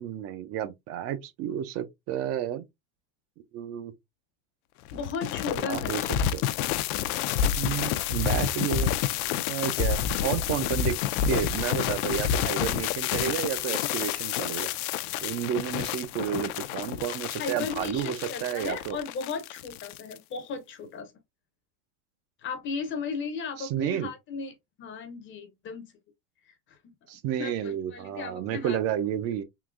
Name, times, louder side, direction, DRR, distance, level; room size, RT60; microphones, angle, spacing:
voice 1, 0.0-2.6 3.5-3.9 5.7-6.0 6.3-6.4 7.5-8.9 9.5-10.9 11.3-14.7 15.2-19.0 23.6-24.1 27.1-29.4, right 10 dB, 35° right, 0.4 m, -31 dB
sound 1, 4.9-20.2, left 9 dB, 80° left, 0.5 m, -29 dB
voice 2, 4.9-6.1 17.4-21.1 22.4-25.9 26.5-26.9 27.3-28.8, left 5 dB, 30° left, 0.6 m, -36 dB
3.8 x 2.6 x 2.4 m
supercardioid pair, 145°, 43 cm